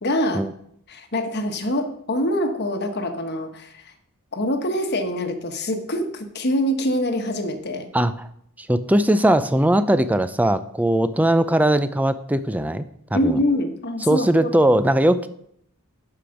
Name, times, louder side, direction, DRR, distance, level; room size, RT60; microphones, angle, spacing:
voice 1, 0.0-0.5 0.9-3.9 4.3-7.9 13.1-14.5, equal, 50° left, 6 dB, 1.2 m, -24 dB
voice 2, 7.9-8.3 8.6-12.8 13.1-13.4 14.1-15.3, right 1 dB, 5° right, 12 dB, 0.4 m, -19 dB
11.5 x 5.1 x 5.9 m, 0.71 s
head